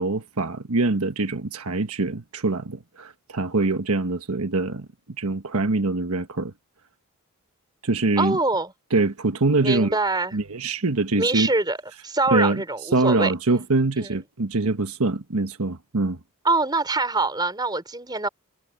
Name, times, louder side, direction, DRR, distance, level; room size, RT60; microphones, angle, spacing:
voice 1, 0.0-4.9 5.2-6.5 7.8-8.4 8.9-9.9 10.3-11.5 12.3-12.6 12.9-16.2, right 3 dB, 80° right, 1.3 m, -24 dB
voice 2, 8.2-8.7 9.6-10.4 11.2-11.8 12.0-13.6 14.0-14.2 16.4-18.3, right 3 dB, 20° right, 4.4 m, -24 dB
head